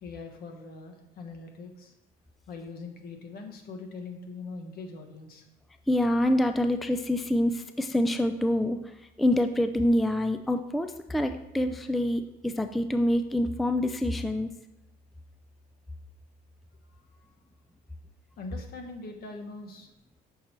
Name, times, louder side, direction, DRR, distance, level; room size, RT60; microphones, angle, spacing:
voice 1, 0.0-1.9 2.5-5.4 16.9-17.3 18.4-19.9, left 3 dB, 65° left, 4 dB, 1.2 m, -42 dB
voice 2, 5.9-8.8 9.2-14.5, left 1 dB, ahead, 8 dB, 0.3 m, -26 dB
6.2 x 4.3 x 4.5 m, 0.96 s
cardioid pair, 110°, 17 cm